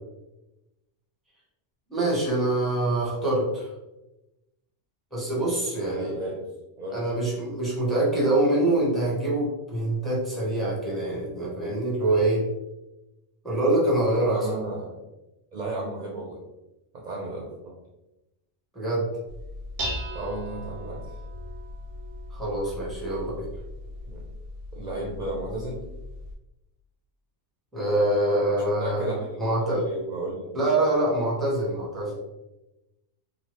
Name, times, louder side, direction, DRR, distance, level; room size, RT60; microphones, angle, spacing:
voice 1, 1.9-3.7 5.1-6.1 6.9-12.4 13.4-14.4 18.7-19.1 22.3-23.5 27.7-29.1 29.4-29.8 30.5-32.1, right 1 dB, ahead, -6 dB, 0.8 m, -25 dB
voice 2, 5.3-6.4 6.8-7.1 14.3-14.9 15.5-16.4 16.9-17.8 20.1-21.0 24.1-24.2 24.7-25.8 28.5-30.7, right 2 dB, 50° right, -2 dB, 0.6 m, -34 dB
Dishes pots and pans, 19.3-26.3, left 1 dB, 85° right, 0.9 m, -38 dB
3.0 x 2.2 x 3.0 m, 0.98 s
omnidirectional pair, 1.2 m